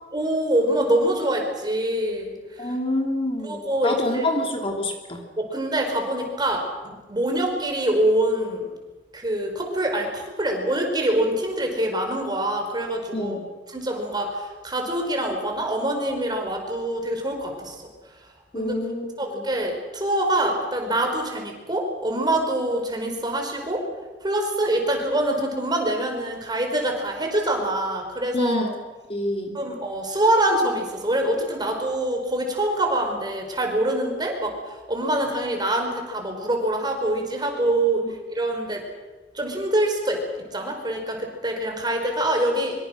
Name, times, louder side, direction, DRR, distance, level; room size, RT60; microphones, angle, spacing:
voice 1, 0.1-2.8 3.4-4.3 5.4-8.7 9.1-13.4 13.7-17.8 18.5-18.8 19.2-23.9 24.2-28.7 29.5-38.0 38.3-38.8 39.3-42.8, right 1 dB, 25° right, 3 dB, 4.9 m, -25 dB
voice 2, 2.6-5.2 13.1-13.4 18.5-19.1 19.3-19.4 28.3-28.8 29.1-29.6, left 1 dB, 30° left, 2 dB, 2.8 m, -27 dB
24.5 x 24.5 x 6.5 m, 1.2 s
head